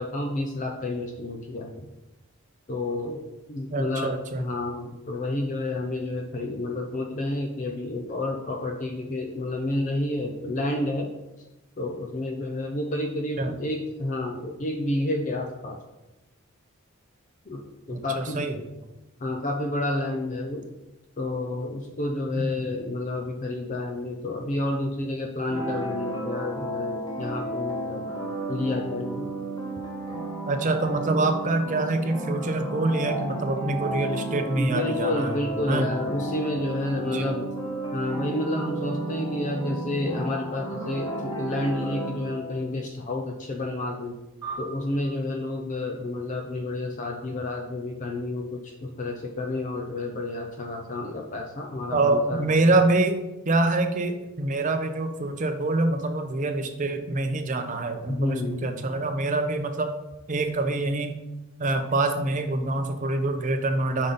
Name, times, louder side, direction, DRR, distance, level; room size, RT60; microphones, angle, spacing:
voice 1, 0.0-1.9 2.7-3.2 3.5-4.1 4.4-11.1 11.8-15.8 17.5-18.6 19.2-20.6 21.2-28.1 28.5-29.3 33.7-33.8 34.6-37.5 37.9-44.2 44.6-52.7 58.1-58.9, left 2 dB, 35° left, 1 dB, 0.5 m, -30 dB
voice 2, 3.7-4.4 13.4-13.6 17.9-18.6 22.3-22.5 30.5-35.4 35.7-35.9 37.0-37.3 51.9-59.9 60.3-61.2 61.6-64.1, right 2 dB, 35° right, 7 dB, 0.6 m, -25 dB
sound 1, 25.5-42.7, right 1 dB, 20° left, 1.1 m, -33 dB
sound 2, 44.4-47.1, right 4 dB, 20° right, 1.7 m, -42 dB
5.3 x 4.0 x 5.1 m, 1.0 s
head